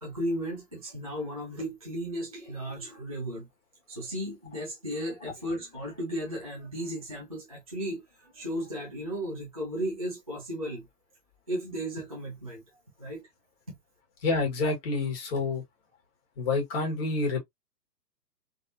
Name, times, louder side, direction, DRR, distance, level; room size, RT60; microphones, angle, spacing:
voice 1, 0.0-3.5 3.9-10.9 11.5-12.6 13.0-13.3 13.7-13.8, equal, 25° right, 0.4 m, -35 dB
voice 2, 14.2-15.6 16.4-17.4, left 3 dB, 35° left, 1.5 m, -28 dB
3.4 x 2.4 x 2.6 m
hypercardioid pair, 160°, 50 cm